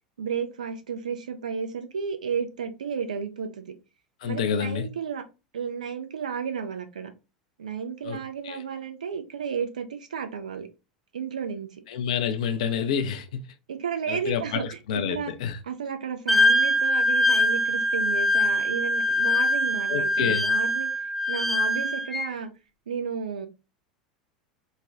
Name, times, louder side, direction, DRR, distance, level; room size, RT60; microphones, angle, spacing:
voice 1, 0.2-3.7 4.2-5.2 5.5-7.1 7.6-10.7 11.1-11.8 13.7-14.8 15.1-15.3 15.6-20.9 21.3-22.5 22.9-23.5, right 6 dB, 70° right, 0.5 m, -32 dB
voice 2, 4.2-4.9 8.0-8.6 11.9-13.5 14.1-15.6 19.9-20.5, left 7 dB, 60° left, 0.4 m, -29 dB
Wind instrument woodwind instrument, 16.3-22.3, left 1 dB, ahead, 0.5 m, -23 dB
3.1 x 2.2 x 2.6 m
figure-of-eight pair, 80°, 4 cm